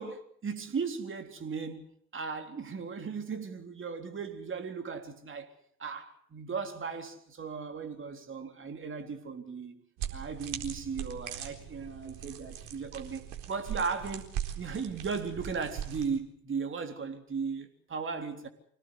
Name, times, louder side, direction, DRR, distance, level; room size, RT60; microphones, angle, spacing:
voice 1, 0.0-1.9 2.1-5.5 5.8-9.8 10.1-14.3 14.6-18.5, right 5 dB, 25° right, 3.8 m, -37 dB
sound 1, 10.0-16.2, right 10 dB, 55° right, 4.2 m, -40 dB
26.0 x 18.0 x 8.4 m
figure-of-eight pair, 75°, 47 cm